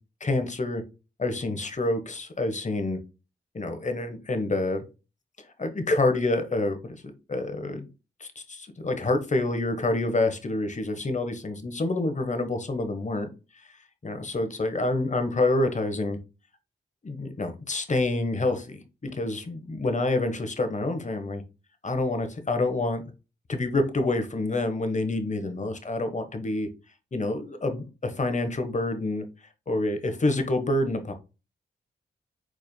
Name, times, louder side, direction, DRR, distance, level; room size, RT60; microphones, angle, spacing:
voice 1, 0.2-0.8 1.2-3.0 3.5-4.8 5.6-7.0 7.3-7.9 8.2-13.3 14.0-16.2 17.0-21.4 21.8-23.0 23.5-26.7 27.1-29.2 29.7-31.1, left 2 dB, 40° left, 1.3 m, -27 dB
4.7 x 4.4 x 2.3 m
supercardioid pair, 40°, 19 cm